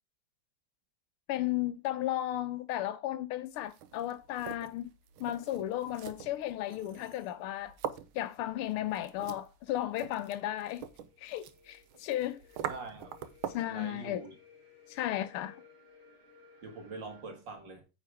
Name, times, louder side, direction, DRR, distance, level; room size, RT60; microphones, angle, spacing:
voice 1, 1.3-4.9 5.2-7.7 8.1-10.8 11.2-12.4 13.5-14.2 14.9-15.6, left 13 dB, 85° left, 1.6 m, -34 dB
sound 1, 3.6-13.8, right 9 dB, 75° right, 1.6 m, -44 dB
sound 2, 10.2-17.2, left 5 dB, 30° right, 2.8 m, -60 dB
voice 2, 12.7-13.1 13.7-14.3 16.6-17.8, right 3 dB, 60° right, 2.4 m, -43 dB
9.1 x 5.0 x 4.8 m
omnidirectional pair, 2.4 m